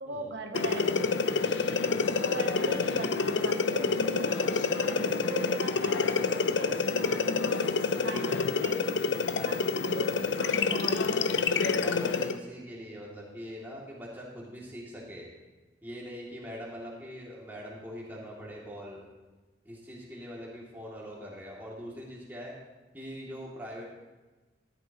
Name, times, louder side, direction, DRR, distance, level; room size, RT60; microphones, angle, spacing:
voice 1, 0.0-1.9 2.3-7.7 8.0-8.9 9.4-11.5, right 2 dB, 75° right, 4 dB, 0.9 m, -40 dB
sound 1, 0.5-12.4, left 4 dB, 85° left, 0.6 m, -28 dB
voice 2, 7.9-8.4 9.3-9.6 11.8-15.3 15.8-19.1 19.6-22.5 22.9-23.8, equal, 10° right, -5 dB, 2.6 m, -42 dB
14.0 x 12.0 x 3.0 m, 1.2 s
head